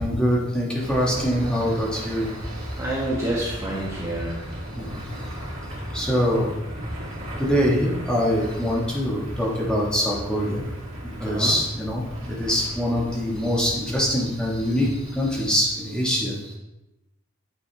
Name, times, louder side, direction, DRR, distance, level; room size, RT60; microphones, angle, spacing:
voice 1, 0.0-2.3 4.8-5.1 5.9-6.5 7.4-10.6 11.2-16.5, equal, 5° left, -4 dB, 1.3 m, -24 dB
sound 1, 0.8-15.4, equal, 80° right, 2.2 m, -36 dB
voice 2, 2.8-4.4 11.2-11.5, right 1 dB, 15° right, -6 dB, 1.1 m, -28 dB
8.6 x 5.3 x 3.4 m, 0.96 s
head